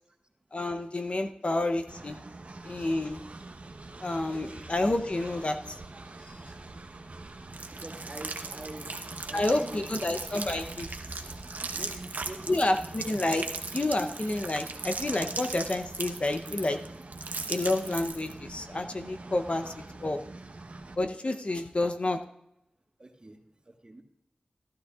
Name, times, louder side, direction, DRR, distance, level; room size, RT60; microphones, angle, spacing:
voice 1, 0.5-2.2 2.6-3.2 4.0-5.6 9.3-10.9 12.5-13.5 13.7-16.8 17.5-20.2 21.0-22.2, left 2 dB, 45° left, 7 dB, 0.7 m, -29 dB
Train, 1.9-20.9, right 2 dB, 55° right, 1.0 m, -45 dB
voice 2, 2.9-3.2 7.8-8.9 9.3-9.7 10.0-10.1 11.7-12.7 23.0-23.4 23.8-24.0, right 2 dB, 35° right, 3 dB, 1.4 m, -45 dB
sound 1, 7.5-18.4, right 3 dB, 85° right, 0.8 m, -38 dB
14.5 x 12.5 x 2.4 m, 0.81 s
wide cardioid pair, 75°, 3 cm